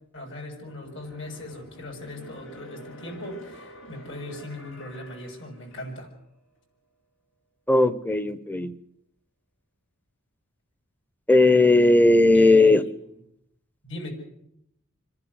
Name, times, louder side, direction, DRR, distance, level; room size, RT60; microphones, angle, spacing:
voice 1, 0.1-6.1 12.3-12.9 13.8-14.1, left 1 dB, 60° left, 0 dB, 7.0 m, -39 dB
sound 1, 0.6-6.2 6.6-6.7, equal, 85° left, 5.7 m, -48 dB
voice 2, 7.7-8.7 11.3-12.8, left 2 dB, 10° left, 15 dB, 0.9 m, -17 dB
27.5 x 11.0 x 9.6 m, 0.77 s
head